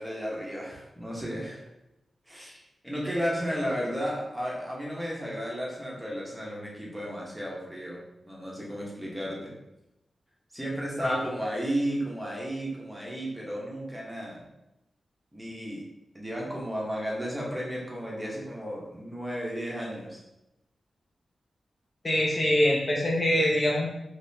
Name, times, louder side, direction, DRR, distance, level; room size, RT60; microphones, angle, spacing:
voice 1, 0.0-1.6 2.3-9.5 10.5-14.4 15.3-15.8 16.1-20.2, equal, 5° right, -4 dB, 1.0 m, -33 dB
voice 2, 22.0-23.9, left 1 dB, 30° left, -3 dB, 0.6 m, -24 dB
3.9 x 3.1 x 2.7 m, 0.91 s
wide cardioid pair, 100°, 0 cm